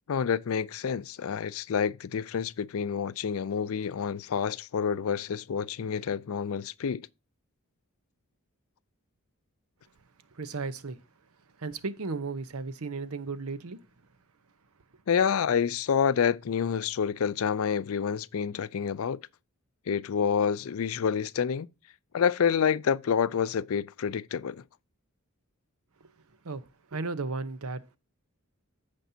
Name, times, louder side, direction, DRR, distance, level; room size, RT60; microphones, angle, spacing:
voice 1, 0.1-7.1 15.1-19.2 19.9-21.7 22.1-24.6, left 7 dB, 70° left, 0.4 m, -28 dB
voice 2, 10.3-11.0 11.6-13.8 26.0-26.1 26.4-28.0, right 4 dB, 85° right, 0.8 m, -35 dB
15.0 x 5.2 x 2.7 m
head